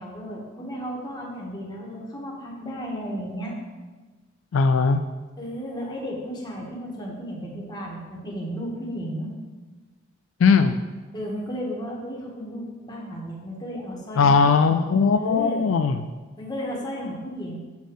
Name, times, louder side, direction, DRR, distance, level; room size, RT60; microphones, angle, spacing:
voice 1, 0.0-3.6 5.4-9.3 11.1-14.3 15.2-15.7 16.4-17.5, equal, 20° left, -3 dB, 1.6 m, -34 dB
voice 2, 4.5-5.0 10.4-10.8 14.2-16.1, left 5 dB, 70° left, 8 dB, 0.4 m, -19 dB
7.0 x 4.1 x 6.4 m, 1.3 s
head